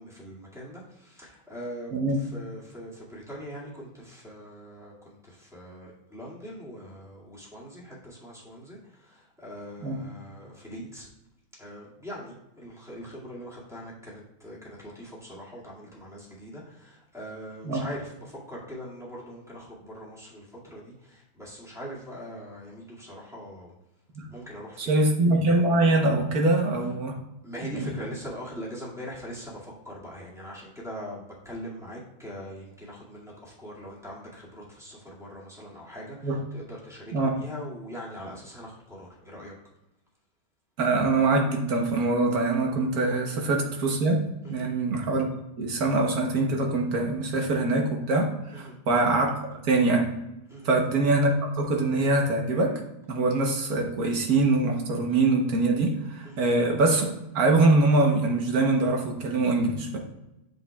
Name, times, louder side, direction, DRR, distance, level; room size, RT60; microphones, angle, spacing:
voice 1, 0.0-11.1 11.6-23.7 24.3-25.1 27.4-39.5 44.4-44.7 48.5-48.8 50.5-50.7 56.2-56.4, equal, ahead, -6 dB, 2.0 m, -42 dB
voice 2, 1.9-2.2 9.8-10.0 17.6-17.9 24.1-24.3 24.8-27.2 27.7-27.9 36.2-36.4 37.1-37.4 40.8-49.4 49.6-50.1 50.6-51.3 51.6-52.8 53.1-60.0, right 2 dB, 75° right, 1 dB, 1.5 m, -24 dB
7.9 x 6.4 x 2.3 m, 0.92 s
omnidirectional pair, 1.6 m